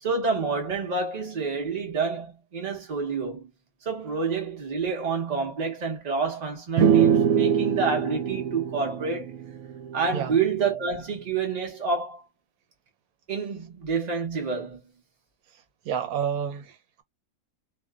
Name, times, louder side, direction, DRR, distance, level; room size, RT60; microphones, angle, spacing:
voice 1, 0.0-3.5 3.8-9.3 9.9-12.2 13.3-14.8, right 5 dB, 35° right, 0.9 m, -28 dB
sound 1, 6.8-10.3, right 7 dB, 70° right, 0.9 m, -23 dB
voice 2, 15.5-17.0, right 8 dB, 85° right, 1.2 m, -31 dB
2.6 x 2.4 x 2.3 m
omnidirectional pair, 1.5 m